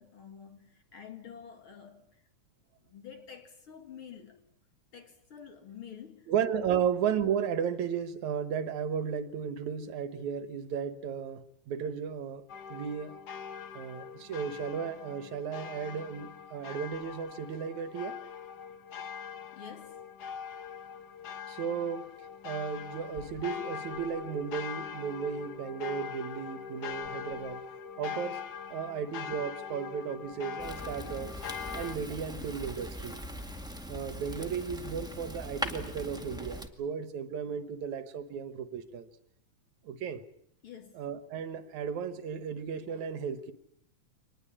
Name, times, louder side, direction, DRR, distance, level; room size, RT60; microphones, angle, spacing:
voice 1, 0.0-2.1 2.8-4.4 4.9-6.3 6.7-6.8 19.5-20.1 40.6-41.0, left 8 dB, 45° left, 2.6 m, -48 dB
voice 2, 6.3-12.4 12.7-13.2 13.7-18.2 21.5-22.1 22.4-27.6 28.0-28.4 28.7-31.4 31.7-33.2 33.9-39.1 39.9-40.2 41.0-43.5, right 7 dB, 75° right, 2.5 m, -34 dB
sound 1, 12.5-32.0, left 7 dB, 70° left, 0.9 m, -42 dB
Fire, 30.6-36.7, equal, ahead, 1.2 m, -40 dB
24.5 x 20.0 x 8.6 m
omnidirectional pair, 3.4 m